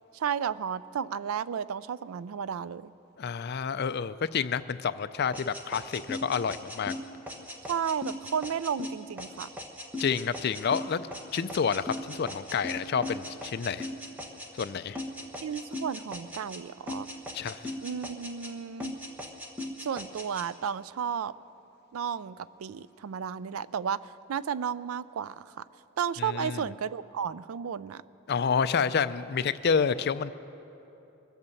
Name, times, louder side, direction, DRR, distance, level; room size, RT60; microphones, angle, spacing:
voice 1, 0.1-2.9 7.7-9.5 15.4-17.1 17.8-19.0 19.8-21.3 21.9-25.6 26.0-28.0, right 7 dB, 80° right, 17 dB, 0.4 m, -33 dB
voice 2, 3.2-6.9 10.0-11.1 11.3-13.9 14.6-15.0 17.3-17.6 26.2-26.6 28.3-30.3, left 6 dB, 50° left, 14 dB, 0.4 m, -29 dB
sound 1, 5.3-14.7 15.0-16.6 16.9-18.5 18.8-20.5, left 1 dB, 10° right, 1.1 m, -38 dB
23.0 x 8.1 x 7.0 m, 2.9 s
head